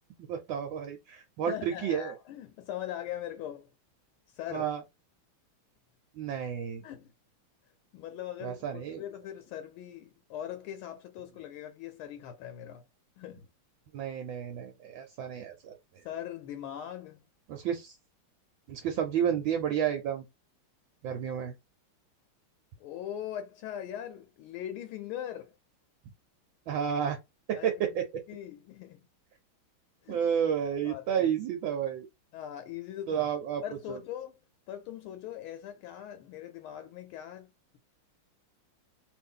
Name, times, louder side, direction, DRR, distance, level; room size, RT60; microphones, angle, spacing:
voice 1, 0.3-2.1 4.5-4.8 6.1-6.8 8.4-9.0 13.9-16.0 17.5-17.9 18.7-20.2 21.0-21.5 26.7-27.2 27.5-28.2 30.1-32.1 33.1-33.6 33.9-34.0, right 8 dB, 70° right, 1.4 m, -31 dB
voice 2, 1.5-3.7 4.3-4.7 6.8-7.1 7.9-12.8 13.2-13.5 16.0-17.3 22.8-25.5 27.5-28.0 28.3-29.0 30.0-30.2 30.8-31.3 32.3-33.3 33.6-34.4 34.7-37.8, left 11 dB, 80° left, 1.5 m, -41 dB
3.3 x 2.6 x 3.6 m
omnidirectional pair, 2.3 m